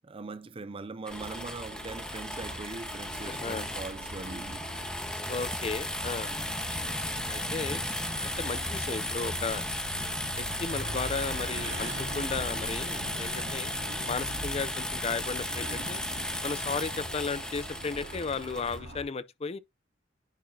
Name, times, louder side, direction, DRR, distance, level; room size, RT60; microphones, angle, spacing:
voice 1, 0.0-4.7 6.2-6.5, right 3 dB, 30° right, 0.4 m, -41 dB
sound 1, 1.1-18.8, left 1 dB, 5° left, 1.1 m, -35 dB
sound 2, 1.1-19.0, right 1 dB, 75° right, 2.4 m, -42 dB
voice 2, 3.3-3.6 5.3-6.3 7.3-7.8 8.1-9.6 10.4-13.8 14.1-16.0 16.4-19.6, left 4 dB, 30° left, 0.5 m, -35 dB
10.0 x 4.8 x 2.7 m
head